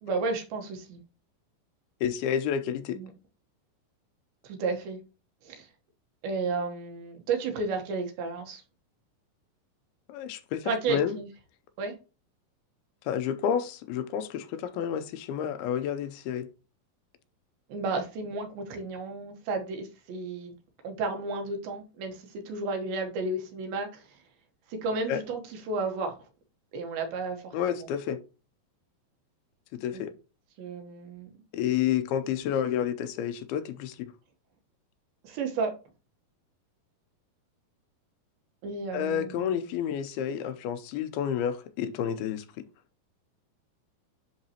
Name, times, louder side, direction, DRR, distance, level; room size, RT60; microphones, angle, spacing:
voice 1, 0.0-1.0 2.9-3.1 4.4-5.0 5.4-5.7 6.2-8.6 10.6-11.3 11.8-11.9 17.7-20.5 20.8-24.0 24.7-26.2 26.7-27.9 29.9-30.0 30.6-31.3 35.2-35.7 38.6-39.6, right 3 dB, 75° right, 3.0 m, -32 dB
voice 2, 2.0-3.0 10.1-11.2 13.1-16.5 25.1-25.2 27.5-28.2 29.7-30.1 31.5-34.1 38.9-42.5, left 9 dB, 85° left, 2.6 m, -30 dB
10.5 x 3.7 x 2.9 m
omnidirectional pair, 4.3 m